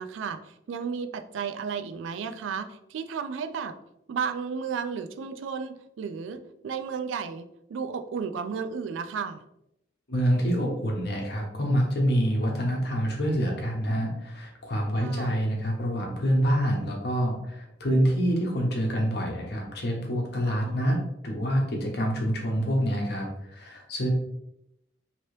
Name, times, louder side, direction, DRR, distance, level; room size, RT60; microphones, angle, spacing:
voice 1, 0.0-3.8 4.1-9.4 15.0-15.3 20.5-21.0, right 6 dB, 75° right, 9 dB, 0.3 m, -33 dB
voice 2, 10.1-21.0 21.2-24.1, equal, 55° left, 0 dB, 0.8 m, -26 dB
2.9 x 2.8 x 3.0 m, 0.81 s
head